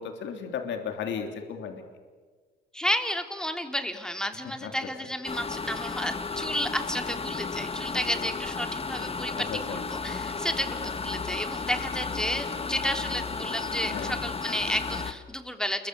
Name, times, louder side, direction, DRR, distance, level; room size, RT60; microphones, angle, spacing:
voice 1, 0.0-1.8 4.6-4.7 9.4-9.8 13.9-14.2, left 7 dB, 80° left, 5 dB, 3.3 m, -34 dB
voice 2, 2.7-15.9, equal, 5° left, 5 dB, 3.6 m, -32 dB
sound 1, 5.2-15.1, left 4 dB, 30° left, 1.9 m, -33 dB
29.0 x 23.5 x 8.4 m, 1.5 s
cardioid pair, 80°, 19 cm